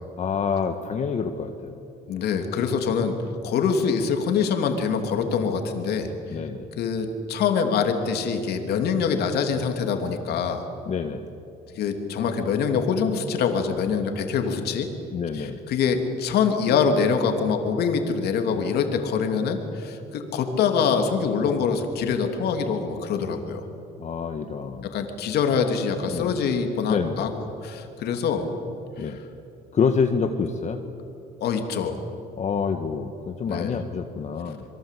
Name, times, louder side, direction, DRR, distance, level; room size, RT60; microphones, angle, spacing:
voice 1, 0.2-1.8 6.3-6.7 10.8-11.2 15.1-15.6 24.0-24.9 26.1-26.4 26.9-27.3 28.1-28.2 29.0-29.2 29.7-30.8 32.4-34.6, left 6 dB, 45° left, 6 dB, 1.5 m, -27 dB
voice 2, 2.1-3.1 3.4-6.1 6.8-10.6 11.7-14.9 15.3-23.7 24.8-27.3 27.6-28.5 29.0-29.1 31.4-32.0 33.5-33.8, left 6 dB, 70° left, 5 dB, 3.0 m, -24 dB
27.0 x 23.0 x 8.5 m, 2.7 s
cardioid pair, 110°, 17 cm